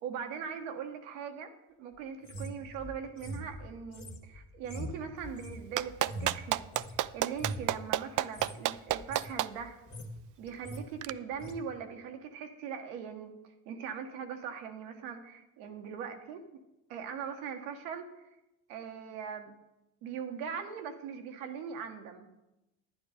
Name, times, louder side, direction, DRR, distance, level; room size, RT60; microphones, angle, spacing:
voice 1, 0.0-1.5 1.8-6.6 7.1-9.8 10.4-16.4 16.9-18.3 18.7-19.5 20.0-22.3, right 7 dB, 90° right, 5 dB, 1.2 m, -41 dB
sound 1, 2.2-7.0 7.3-7.7 8.2-8.6 8.9-9.3 9.7-10.2 10.5-10.9 11.4-11.6, right 1 dB, 50° left, 1.8 m, -42 dB
Clapping, 5.8-9.5 11.0-11.1, right 14 dB, 55° right, 0.5 m, -29 dB
10.5 x 9.5 x 4.9 m, 0.94 s
hypercardioid pair, 60°, 38 cm